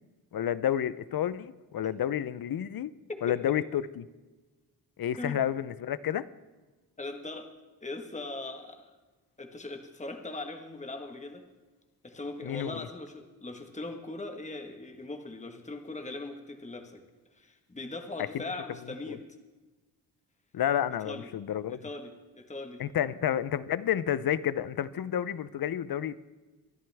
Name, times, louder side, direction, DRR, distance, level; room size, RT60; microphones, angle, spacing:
voice 1, 0.3-2.9 3.2-4.0 5.0-6.3 12.4-12.9 18.3-18.4 19.1-19.2 20.5-21.8 22.8-26.2, left 10 dB, 60° left, 17 dB, 0.6 m, -30 dB
voice 2, 3.1-3.6 5.2-5.4 7.0-7.5 7.8-9.0 9.4-11.4 12.0-17.0 17.3-19.2 21.0-21.3 21.7-22.8, left 2 dB, 15° left, 5 dB, 1.4 m, -40 dB
24.5 x 11.0 x 3.5 m, 1.2 s
wide cardioid pair, 105°, 40 cm